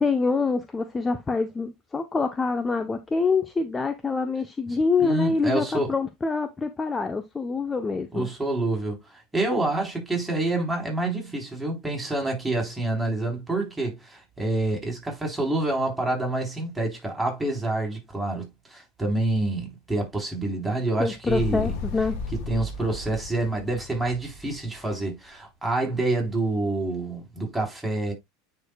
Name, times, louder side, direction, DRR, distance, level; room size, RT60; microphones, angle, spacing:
voice 1, 0.0-8.3 21.0-22.2, left 4 dB, 20° left, 0.7 m, -26 dB
voice 2, 4.7-5.9 8.1-21.7 22.3-28.1, right 2 dB, 10° right, 3.9 m, -27 dB
Motorcycle, 21.3-25.2, left 3 dB, 65° left, 2.0 m, -35 dB
9.8 x 4.7 x 2.3 m
hypercardioid pair, 95°, 0 cm